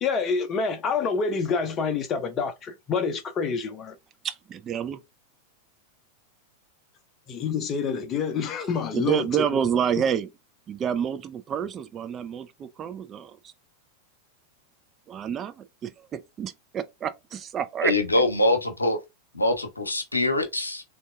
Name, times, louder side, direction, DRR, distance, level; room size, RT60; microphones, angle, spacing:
voice 1, 0.0-4.0 7.3-9.3 9.5-9.6, left 5 dB, 30° left, 0.5 m, -27 dB
voice 2, 4.2-5.0 8.9-10.3 10.7-13.4 15.1-17.9, right 8 dB, 25° right, 0.3 m, -28 dB
voice 3, 17.8-19.0 19.3-20.8, left 2 dB, 80° left, 0.7 m, -23 dB
3.5 x 2.7 x 2.2 m
figure-of-eight pair, 90°, 0 cm